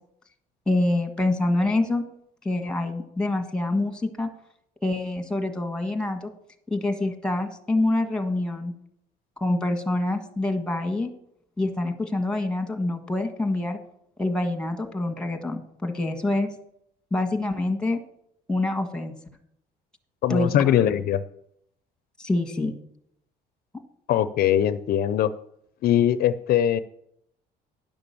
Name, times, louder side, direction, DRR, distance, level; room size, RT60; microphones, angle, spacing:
voice 1, 0.7-2.1 2.4-4.3 4.8-6.3 6.7-8.7 9.4-11.1 11.6-13.8 14.2-16.5 17.1-18.0 18.5-19.2 20.3-20.7 22.2-22.7, left 2 dB, 5° left, 5 dB, 1.5 m, -26 dB
voice 2, 20.2-21.2 24.1-25.3 25.8-26.8, left 11 dB, 65° left, 13 dB, 0.5 m, -21 dB
10.5 x 6.0 x 6.9 m, 0.73 s
cardioid pair, 110°, 17 cm